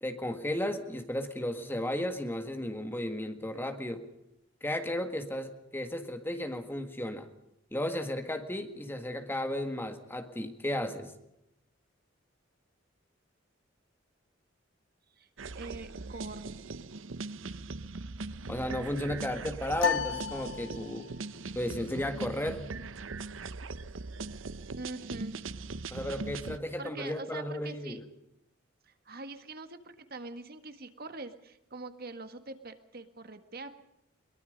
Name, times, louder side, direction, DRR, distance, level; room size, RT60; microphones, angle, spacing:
voice 1, 0.0-4.0 4.6-7.3 7.7-11.1 18.5-21.1 21.6-22.7 25.9-28.0, left 1 dB, 10° left, 7 dB, 1.8 m, -34 dB
sound 1, 15.4-26.6, right 3 dB, 85° right, 0.9 m, -40 dB
voice 2, 15.5-16.5 24.8-25.4 26.0-26.1 26.8-28.0 28.8-33.8, right 3 dB, 50° right, 9 dB, 1.8 m, -43 dB
sound 2, 19.8-21.3, left 7 dB, 85° left, 1.3 m, -33 dB
22.5 x 22.5 x 5.3 m, 0.84 s
head